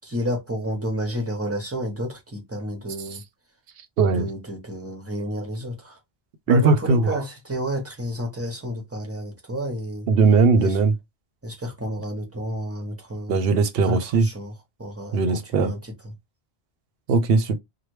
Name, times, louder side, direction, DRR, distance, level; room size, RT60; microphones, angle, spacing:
voice 1, 0.0-3.2 4.1-6.0 6.5-10.1 10.6-10.8 11.4-13.4 13.8-14.5 14.8-15.9, equal, 15° right, 0.8 m, -30 dB
voice 2, 4.0-4.3 6.5-7.2 10.1-10.9 13.3-14.3 15.1-15.7 17.1-17.6, right 4 dB, 70° right, 0.8 m, -19 dB
3.2 x 2.2 x 3.1 m
omnidirectional pair, 1.1 m